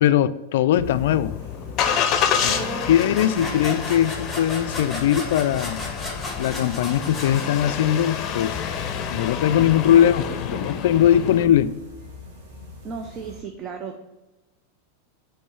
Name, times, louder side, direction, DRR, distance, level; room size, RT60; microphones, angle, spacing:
voice 1, 0.0-1.3 2.4-2.5 2.9-5.8 6.4-8.6 9.1-10.2 10.5-11.7, left 10 dB, 70° left, 15 dB, 0.3 m, -20 dB
Engine starting, 0.7-11.5, left 7 dB, 40° left, 0.7 m, -29 dB
sound 1, 0.8-13.4, left 3 dB, 65° right, 1.8 m, -43 dB
voice 2, 2.4-2.9 3.2-3.7 9.9-10.7 12.8-14.1, right 6 dB, 35° right, 3 dB, 0.6 m, -35 dB
sound 2, 2.5-8.2, left 2 dB, 5° left, 1.6 m, -35 dB
5.4 x 3.6 x 5.5 m, 1.1 s
hypercardioid pair, 105°, 0 cm